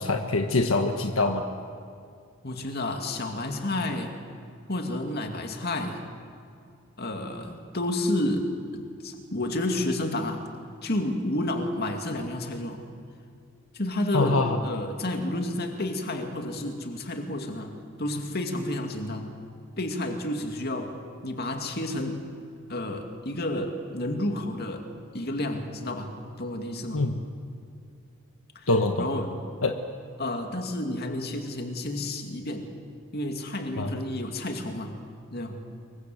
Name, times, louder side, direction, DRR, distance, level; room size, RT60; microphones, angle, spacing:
voice 1, 0.0-1.5 14.1-14.6 26.9-27.2 28.7-29.1 29.6-29.7 33.8-34.0, left 2 dB, 80° left, 5 dB, 1.4 m, -24 dB
voice 2, 2.4-4.2 4.7-6.1 7.0-10.4 10.8-12.8 13.7-17.7 18.0-19.3 19.8-21.0 21.2-22.3 22.7-24.9 25.1-27.0 28.5-28.7 29.0-29.4 30.2-32.7 33.1-34.9 35.3-35.7, left 1 dB, 50° left, 4 dB, 2.5 m, -30 dB
27.5 x 23.0 x 7.9 m, 2.3 s
head